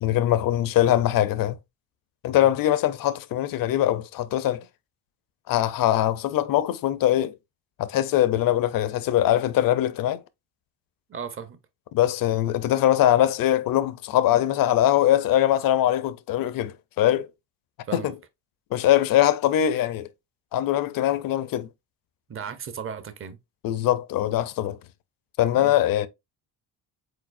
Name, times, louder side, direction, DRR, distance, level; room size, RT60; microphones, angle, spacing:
voice 1, 0.0-1.6 2.2-4.6 5.5-7.3 7.8-10.2 11.9-17.3 17.9-18.1 18.7-20.1 20.5-21.7 23.6-24.8 25.4-26.1, left 12 dB, 50° left, 0.6 m, -22 dB
voice 2, 11.1-11.6 17.9-18.2 22.3-23.4 25.6-25.7, right 7 dB, 30° right, 0.7 m, -36 dB
4.8 x 3.8 x 2.5 m
cardioid pair, 115°, 43 cm